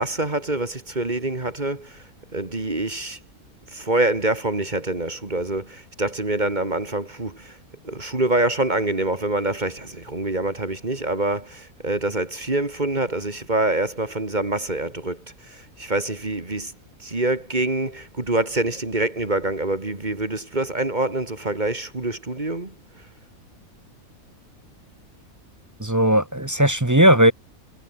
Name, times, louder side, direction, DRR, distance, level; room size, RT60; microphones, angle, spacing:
voice 1, 0.0-2.0 2.3-3.2 3.7-7.6 7.8-16.7 17.0-22.7, right 2 dB, 30° right, 2.6 m, -25 dB
voice 2, 25.8-27.3, right 1 dB, 15° right, 0.9 m, -17 dB
omnidirectional pair, 1.5 m